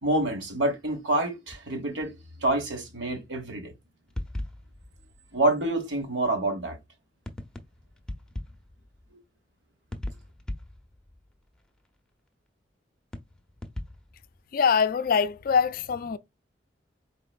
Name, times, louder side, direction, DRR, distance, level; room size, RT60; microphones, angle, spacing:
voice 1, 0.0-2.1 2.4-3.7 5.3-6.8, right 2 dB, 80° right, 1.3 m, -27 dB
sound 1, 1.5-1.6 2.0-2.1 2.5-2.6 4.1-5.8 7.3-9.1 9.9-11.9 13.1-14.4, left 1 dB, 5° left, 0.6 m, -40 dB
voice 2, 14.5-16.2, left 6 dB, 50° left, 0.4 m, -23 dB
4.3 x 3.7 x 2.4 m
head